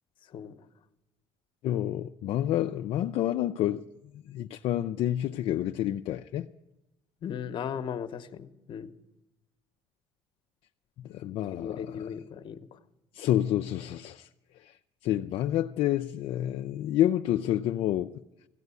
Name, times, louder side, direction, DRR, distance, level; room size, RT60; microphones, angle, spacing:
voice 1, 1.6-3.8 4.1-6.5 11.0-12.1 13.1-14.3 14.5-18.1, left 12 dB, 70° left, 0.4 m, -29 dB
voice 2, 7.2-8.9 11.5-12.8, left 8 dB, 55° left, 0.9 m, -37 dB
15.0 x 8.0 x 9.6 m
cardioid pair, 100°, 10 cm